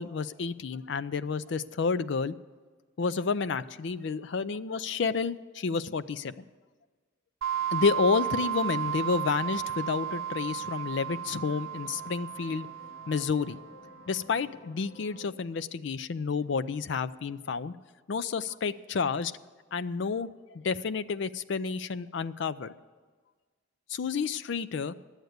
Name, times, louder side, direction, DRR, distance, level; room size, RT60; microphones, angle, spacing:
voice 1, 0.0-2.3 3.0-6.3 7.7-12.7 13.1-13.6 14.1-17.7 18.1-19.3 19.7-22.7 23.9-24.9, left 5 dB, 60° left, 14 dB, 0.4 m, -30 dB
sound 1, 7.4-13.9, right 10 dB, 80° right, 0.5 m, -34 dB
sound 2, 7.5-15.3, left 2 dB, 35° left, 2.2 m, -53 dB
12.0 x 8.0 x 8.0 m, 1.4 s
head